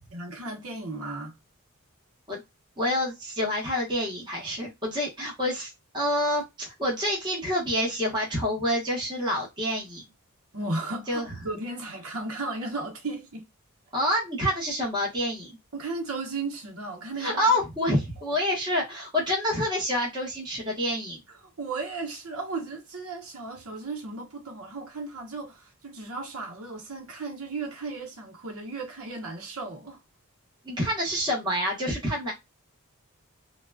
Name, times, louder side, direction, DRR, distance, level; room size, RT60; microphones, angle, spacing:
voice 1, 0.1-1.3 10.5-13.5 15.7-17.6 17.9-18.0 21.6-30.0, right 3 dB, 65° right, 0.9 m, -35 dB
voice 2, 2.8-10.0 11.1-11.3 13.9-15.5 17.2-21.2 30.6-32.3, equal, 20° right, 1.1 m, -27 dB
3.8 x 2.3 x 2.2 m
head